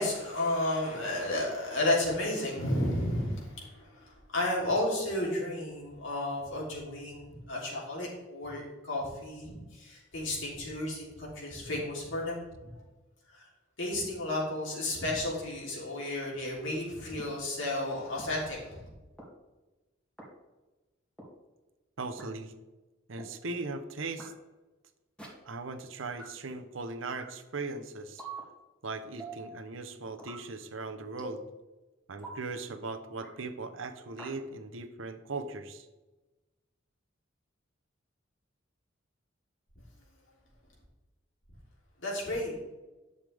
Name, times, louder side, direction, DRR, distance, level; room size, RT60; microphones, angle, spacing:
voice 1, 0.0-12.7 13.3-13.5 13.8-18.9 42.0-42.5, left 1 dB, 70° left, -4 dB, 3.4 m, -32 dB
sound 1, 17.2-17.3 18.2-18.3 19.2-19.3 20.2-20.3 21.2-21.3 22.2-22.3 23.2-23.3 24.2-24.3 25.2-25.3 26.2-26.3 27.2-27.3 28.2-28.4 29.2-29.4 30.2-30.4 31.2-31.4 32.2-32.4 33.2-33.3 34.2-34.3, right 2 dB, 5° left, 2.4 m, -43 dB
voice 2, 22.0-22.5 23.1-24.3 25.4-28.2 28.8-31.4 32.1-35.9, right 3 dB, 75° right, 9 dB, 0.9 m, -39 dB
11.0 x 6.8 x 3.5 m, 1.1 s
head